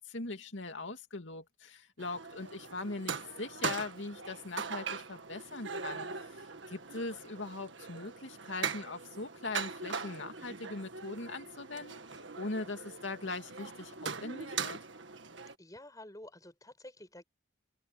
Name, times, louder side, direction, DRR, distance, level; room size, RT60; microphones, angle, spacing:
voice 1, 0.1-6.1 6.7-12.0 12.4-14.8, left 3 dB, 75° left, 2.5 m, -41 dB
sound 1, 2.0-15.6, right 5 dB, 70° right, 1.7 m, -41 dB
voice 2, 15.6-17.2, left 1 dB, 20° left, 6.8 m, -50 dB
head